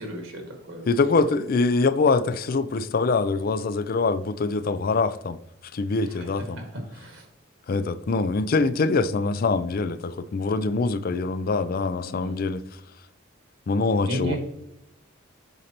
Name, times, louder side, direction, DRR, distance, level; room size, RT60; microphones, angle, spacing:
voice 1, 0.0-0.9 6.1-6.7 6.9-7.2 12.0-12.4 14.0-14.4, equal, 70° right, 1.6 m, -34 dB
voice 2, 0.9-5.4 5.7-6.6 7.7-12.6 13.7-14.4, left 3 dB, 45° left, 0.4 m, -24 dB
8.0 x 5.3 x 2.9 m
head